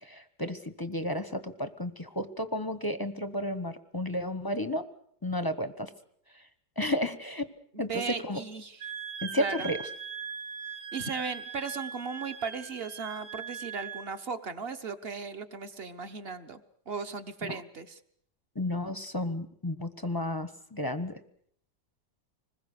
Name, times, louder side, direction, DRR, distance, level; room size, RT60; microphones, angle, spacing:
voice 1, 0.0-4.9 5.2-5.9 6.8-7.5 7.8-8.4 9.2-9.8 17.4-17.6 18.5-21.2, left 1 dB, 15° left, 11 dB, 0.8 m, -32 dB
voice 2, 7.7-8.9 9.4-9.7 10.9-16.6 16.9-18.0, right 5 dB, 40° right, 9 dB, 1.3 m, -37 dB
Wind instrument woodwind instrument, 8.8-14.1, right 7 dB, 75° right, 1.9 m, -40 dB
25.5 x 21.0 x 6.7 m, 0.65 s
omnidirectional pair, 1.8 m